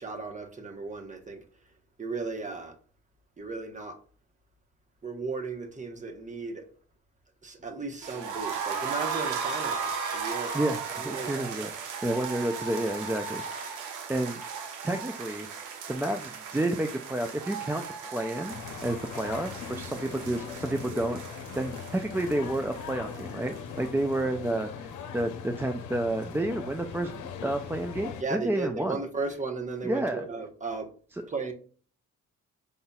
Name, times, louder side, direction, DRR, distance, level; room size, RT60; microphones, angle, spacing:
voice 1, 0.0-1.4 2.0-2.8 3.4-4.0 5.0-6.7 7.4-10.5 11.0-11.5 28.2-30.9 31.3-31.5, right 3 dB, 25° right, 1.1 m, -35 dB
sound 1, 8.0-23.9 24.1-24.2 24.5-24.6, right 6 dB, 85° right, 1.0 m, -36 dB
voice 2, 10.5-11.7 12.0-13.8 14.1-14.4 14.8-15.5 15.9-21.2 21.6-29.0 29.8-30.3, right 1 dB, 10° right, 0.3 m, -30 dB
sound 2, 18.5-28.2, left 7 dB, 80° left, 0.7 m, -40 dB
5.3 x 3.9 x 2.3 m
cardioid pair, 90°, 30 cm